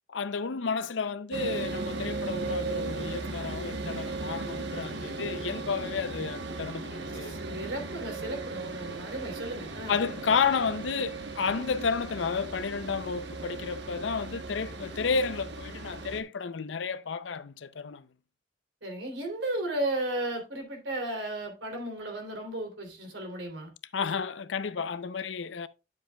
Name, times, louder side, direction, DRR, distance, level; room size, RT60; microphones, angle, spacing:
voice 1, 0.1-7.4 9.9-18.1 23.9-25.7, left 5 dB, 85° left, 0.6 m, -31 dB
sound 1, 1.3-16.2, right 3 dB, 70° right, 1.0 m, -37 dB
voice 2, 7.2-10.0 18.8-23.7, right 1 dB, 85° right, 3.3 m, -34 dB
10.5 x 7.5 x 2.3 m
head